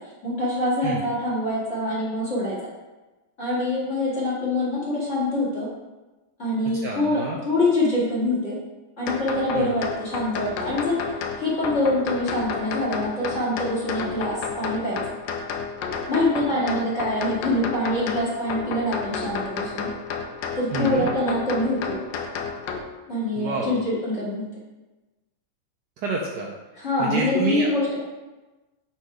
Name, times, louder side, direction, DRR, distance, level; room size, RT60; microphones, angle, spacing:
voice 1, 0.2-2.6 3.4-5.7 6.4-8.6 9.0-11.0 11.4-15.0 16.1-19.9 20.6-22.0 23.1-24.4 26.7-28.0, left 1 dB, 35° left, -8 dB, 2.5 m, -25 dB
voice 2, 6.8-7.4 9.5-9.7 16.5-16.8 20.7-21.1 23.4-23.8 26.0-26.5 27.0-27.7, right 4 dB, 65° right, -1 dB, 1.1 m, -28 dB
sound 1, 9.1-22.8, left 5 dB, 75° left, 1.2 m, -31 dB
5.6 x 4.3 x 4.8 m, 1.1 s
omnidirectional pair, 2.2 m